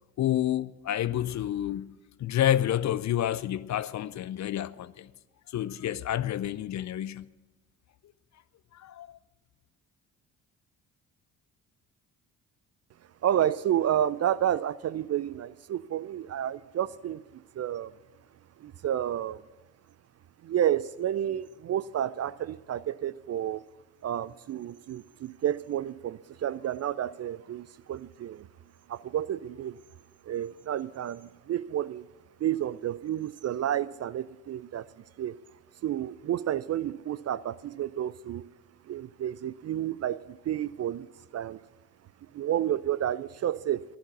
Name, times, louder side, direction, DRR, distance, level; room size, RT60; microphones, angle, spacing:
voice 1, 0.2-5.1 5.5-7.3 8.8-9.2, left 12 dB, 40° left, 0.5 m, -29 dB
voice 2, 13.2-17.2 17.6-17.9 18.6-19.4 20.4-23.6 24.0-28.5 28.9-29.8 30.3-32.1 32.4-34.9 35.2-35.4 35.8-38.4 38.9-41.1 41.3-41.6 42.3-43.8, right 11 dB, 35° right, 0.4 m, -30 dB
11.5 x 11.0 x 7.1 m
hypercardioid pair, 45°, 46 cm